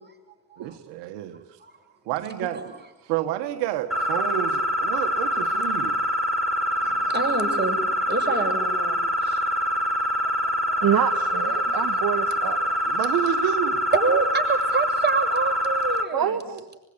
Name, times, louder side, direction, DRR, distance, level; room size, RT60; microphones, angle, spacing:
voice 1, 0.6-1.4 2.0-2.6 3.0-6.0 12.8-13.9 16.5-16.6, right 12 dB, 90° right, 1.4 m, -29 dB
sound 1, 3.9-16.0, equal, ahead, 5.2 m, -25 dB
voice 2, 7.1-9.4 10.2-10.3 10.7-10.8 13.9-16.4, right 4 dB, 25° right, 7.5 m, -26 dB
voice 3, 10.8-12.6 16.1-16.6, right 9 dB, 55° right, 1.6 m, -26 dB
24.5 x 23.0 x 9.5 m
hypercardioid pair, 50°, 41 cm